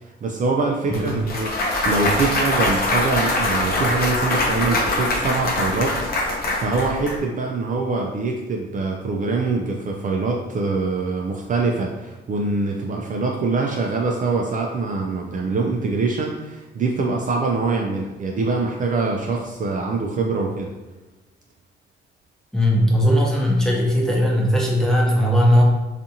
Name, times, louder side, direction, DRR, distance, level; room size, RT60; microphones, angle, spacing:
voice 1, 0.2-6.0 6.5-20.7, right 3 dB, 40° right, 0 dB, 0.4 m, -24 dB
Clapping / Cheering / Applause, 0.9-7.2, left 2 dB, 50° left, 0.6 m, -23 dB
voice 2, 0.9-1.2 22.5-25.6, equal, 5° left, -4 dB, 0.7 m, -18 dB
2.5 x 2.5 x 2.8 m, 1.1 s
cardioid pair, 90°, 20 cm